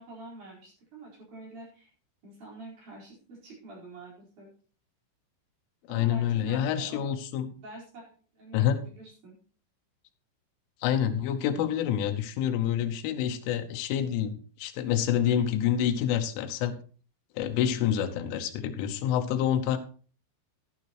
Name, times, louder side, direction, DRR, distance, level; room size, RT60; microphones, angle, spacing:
voice 1, 0.0-1.9 2.2-4.5 5.9-7.1 7.6-9.4 17.5-17.8, right 2 dB, 40° right, -3 dB, 5.5 m, -47 dB
voice 2, 5.9-7.5 8.5-8.8 10.8-16.7 17.4-19.8, left 10 dB, 90° left, 6 dB, 3.4 m, -27 dB
12.0 x 11.5 x 3.0 m, 0.40 s
omnidirectional pair, 5.5 m